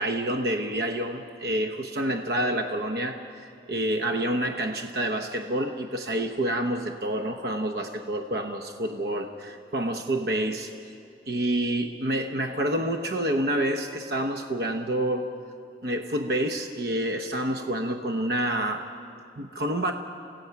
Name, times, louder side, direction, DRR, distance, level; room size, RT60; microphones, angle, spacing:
voice 1, 0.0-10.7 11.3-15.3 15.8-18.9 19.4-19.9, right 1 dB, 60° right, 5 dB, 0.8 m, -28 dB
27.5 x 16.5 x 5.8 m, 2.5 s
head